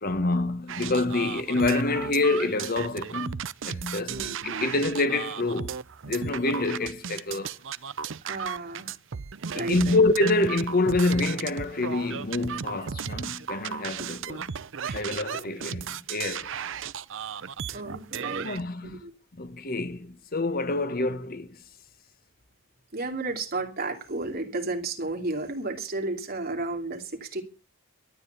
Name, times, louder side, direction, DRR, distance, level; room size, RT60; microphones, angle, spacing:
voice 1, 0.0-4.2 4.4-5.7 6.1-7.5 9.5-14.5 14.9-16.5 18.4-18.9 19.4-21.6, left 2 dB, 45° left, 1.2 m, -27 dB
sound 1, 0.7-18.6, right 7 dB, 60° right, 0.6 m, -35 dB
voice 2, 3.9-4.7 8.2-8.9 9.5-10.0 14.9-15.0 17.7-18.5 18.8-19.1 22.9-27.4, right 2 dB, 45° right, 2.9 m, -33 dB
12.5 x 9.2 x 8.2 m
head